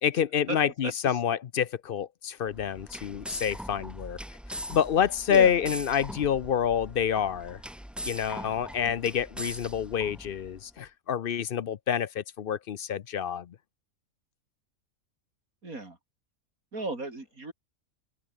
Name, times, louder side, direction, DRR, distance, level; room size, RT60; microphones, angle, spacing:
voice 1, 0.0-4.2 4.5-7.6 8.1-13.6, left 8 dB, 55° left, 0.6 m, -28 dB
voice 2, 0.8-1.2 5.3-5.5 8.8-8.9 15.6-16.0 16.7-17.5, right 2 dB, 80° right, 5.4 m, -35 dB
sound 1, 2.5-10.6, equal, ahead, 0.7 m, -41 dB
open air
omnidirectional pair, 1.5 m